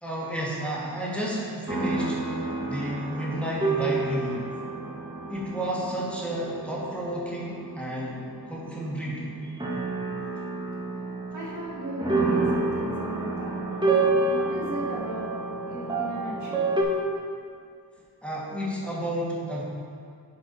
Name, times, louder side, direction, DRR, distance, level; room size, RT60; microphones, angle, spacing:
voice 1, 0.0-2.4 2.6-4.5 5.3-9.3 18.2-19.6, right 1 dB, 5° left, -7 dB, 2.0 m, -31 dB
sound 1, 1.7-16.8, right 3 dB, 10° right, 1.5 m, -29 dB
voice 2, 9.4-9.7 11.3-14.0 14.3-15.3 15.7-16.6, equal, 50° right, -5 dB, 1.6 m, -37 dB
10.5 x 4.8 x 4.2 m, 2.3 s
cardioid pair, 75°, 38 cm